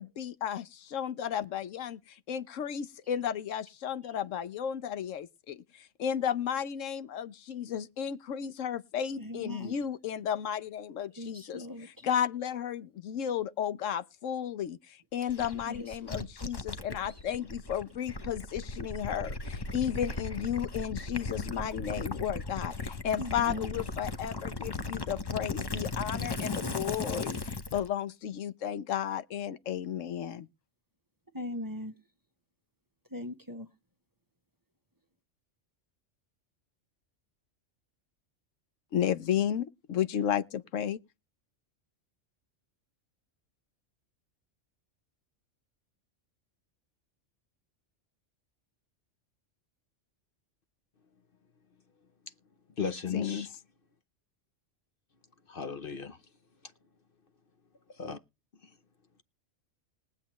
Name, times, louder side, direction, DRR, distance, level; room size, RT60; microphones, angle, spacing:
voice 1, 0.0-11.6 12.0-30.5 38.9-41.0 53.1-53.5, left 9 dB, 80° left, 1.1 m, -33 dB
voice 2, 9.2-9.8 11.1-12.0 15.6-16.2 17.0-17.2 23.2-23.7 31.3-31.9 33.1-33.7, left 1 dB, 15° right, 1.0 m, -40 dB
Gurgling / Liquid, 15.3-27.9, left 3 dB, 25° left, 0.7 m, -37 dB
voice 3, 52.8-53.5 55.5-56.2 57.9-58.2, left 6 dB, 50° left, 0.9 m, -35 dB
21.0 x 7.9 x 3.0 m
omnidirectional pair, 1.3 m